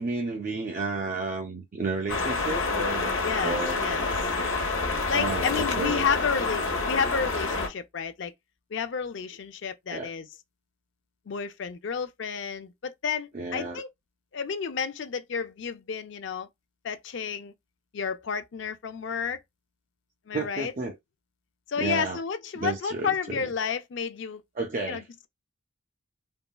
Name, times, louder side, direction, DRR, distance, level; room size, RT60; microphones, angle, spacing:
voice 1, 0.0-3.1 3.4-3.8 5.1-6.1 9.9-10.1 13.3-13.8 20.3-21.0 21.8-22.2 22.5-23.5 24.6-25.0, right 3 dB, 40° right, 0.5 m, -32 dB
sound 1, 2.1-7.7, left 3 dB, 80° left, 0.8 m, -28 dB
voice 2, 3.2-4.1 5.1-8.3 8.7-10.3 11.3-13.9 14.3-16.5 16.8-17.5 17.9-19.4 20.3-20.7 21.7-24.4 24.9-25.3, left 6 dB, 60° left, 0.4 m, -31 dB
3.6 x 2.0 x 2.2 m
head